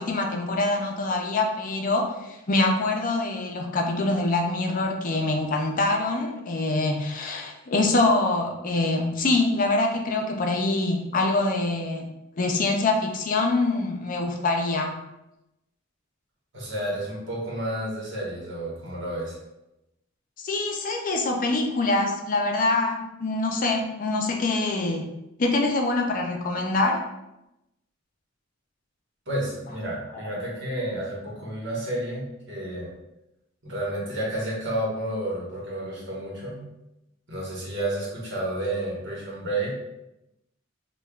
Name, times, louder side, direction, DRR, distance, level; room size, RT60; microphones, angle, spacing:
voice 1, 0.0-12.1 12.4-14.9 20.4-25.1 25.4-27.0, left 2 dB, 45° left, 3 dB, 0.5 m, -25 dB
voice 2, 16.5-19.4 29.3-32.9 33.6-36.6 37.3-39.7, right 1 dB, 65° right, -4 dB, 1.3 m, -31 dB
5.3 x 2.3 x 2.3 m, 0.90 s
head